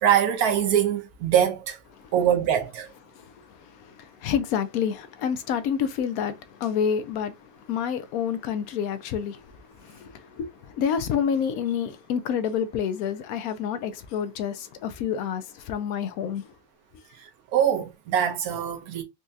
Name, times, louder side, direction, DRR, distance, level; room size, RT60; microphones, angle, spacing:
voice 1, 0.0-1.8 2.1-2.9 17.2-19.0, right 9 dB, 85° right, 1.2 m, -23 dB
voice 2, 3.1-16.5, left 8 dB, 75° left, 1.0 m, -29 dB
4.3 x 2.3 x 2.6 m
omnidirectional pair, 1.6 m